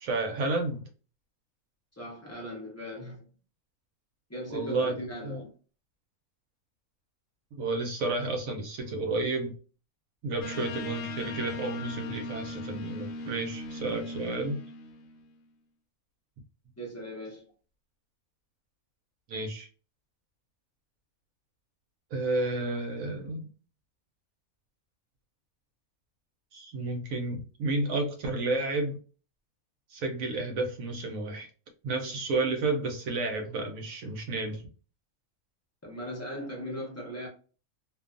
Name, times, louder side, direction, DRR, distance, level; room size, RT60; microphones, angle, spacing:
voice 1, 0.0-0.8 4.5-4.9 5.2-5.4 7.5-9.6 10.2-14.6 19.3-19.7 22.1-23.5 26.5-29.0 29.9-31.5 31.8-34.6, right 2 dB, 75° right, 1.0 m, -31 dB
voice 2, 2.0-3.3 4.3-5.5 16.8-17.5 35.8-37.3, equal, 20° left, 0.5 m, -38 dB
sound 1, 10.4-15.3, left 1 dB, 70° left, 0.9 m, -38 dB
2.5 x 2.3 x 2.4 m
omnidirectional pair, 1.5 m